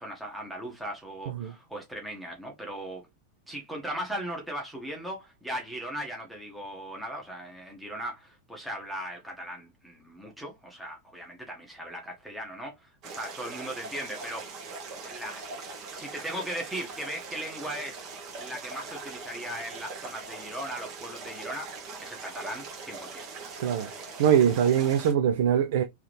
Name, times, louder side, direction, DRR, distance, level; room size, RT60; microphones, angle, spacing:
voice 1, 0.0-3.0 3.5-14.5 15.0-15.6 15.9-18.0 18.4-23.3, right 1 dB, ahead, 1.2 m, -38 dB
sound 1, 13.0-25.1, right 4 dB, 40° right, 1.3 m, -41 dB
voice 2, 23.6-23.9 24.2-25.8, right 9 dB, 55° right, 0.3 m, -22 dB
3.6 x 2.9 x 3.3 m
figure-of-eight pair, 90°, 0 cm